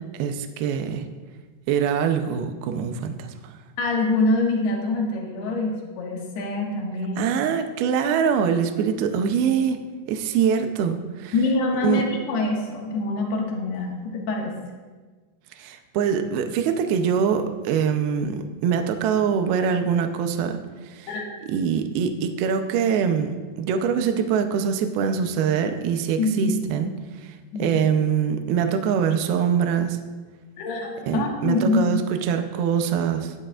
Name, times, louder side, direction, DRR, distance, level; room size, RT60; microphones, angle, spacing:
voice 1, 0.2-1.1 1.7-3.5 7.2-9.8 10.1-11.3 11.8-12.0 15.6-20.6 20.8-21.1 21.5-26.9 27.2-27.3 27.6-30.0 31.1-33.3, right 7 dB, 75° right, 6 dB, 2.5 m, -23 dB
voice 2, 3.8-7.3 11.3-14.6 21.1-21.3 26.2-26.6 27.5-27.8 30.6-32.1, left 2 dB, 75° left, -1 dB, 3.6 m, -25 dB
17.5 x 11.0 x 2.5 m, 1.4 s
omnidirectional pair, 4.9 m